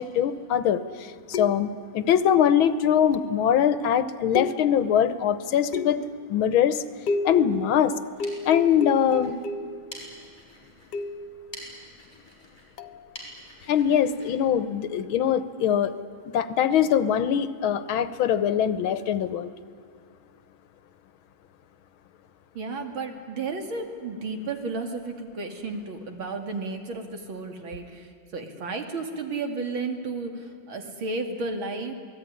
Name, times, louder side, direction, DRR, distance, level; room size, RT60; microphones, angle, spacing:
voice 1, 0.0-6.0 6.3-6.8 7.2-7.9 8.4-9.4 13.7-15.9 16.3-19.5, left 9 dB, 85° left, 14 dB, 1.8 m, -22 dB
sound 1, 1.3-1.9 3.1-3.5 4.3-5.0 5.7-6.2 7.1-7.5 8.2-9.8 10.9-11.3 12.8-13.0, left 3 dB, 60° left, 1.5 m, -32 dB
sound 2, 8.0-15.4, equal, 10° left, 6.3 m, -48 dB
voice 2, 22.5-31.9, right 3 dB, 75° right, 5 dB, 3.2 m, -33 dB
28.0 x 19.5 x 9.9 m, 2.3 s
omnidirectional pair, 2.2 m